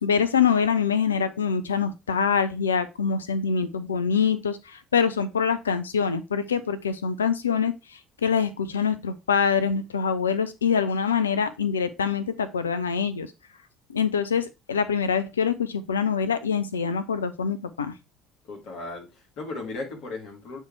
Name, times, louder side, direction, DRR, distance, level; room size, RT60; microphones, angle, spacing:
voice 1, 0.0-13.3 13.9-17.9, left 6 dB, 80° left, 0.4 m, -25 dB
voice 2, 18.5-20.6, left 3 dB, 55° left, 2.3 m, -36 dB
8.0 x 3.4 x 4.5 m
figure-of-eight pair, 55°, 0 cm